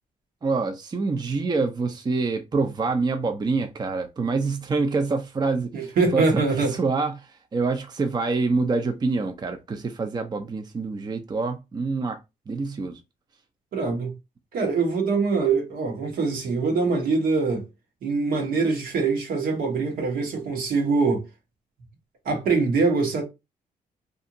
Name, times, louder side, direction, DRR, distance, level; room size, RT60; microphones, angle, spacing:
voice 1, 0.4-5.9 6.1-6.4 6.7-12.2 12.5-13.0, right 4 dB, 30° right, 0.5 m, -26 dB
voice 2, 5.7-6.7 13.7-14.1 14.5-17.7 18.0-21.2 22.2-23.2, right 4 dB, 75° right, 1.1 m, -23 dB
2.8 x 2.5 x 2.6 m
cardioid pair, 90°, 15 cm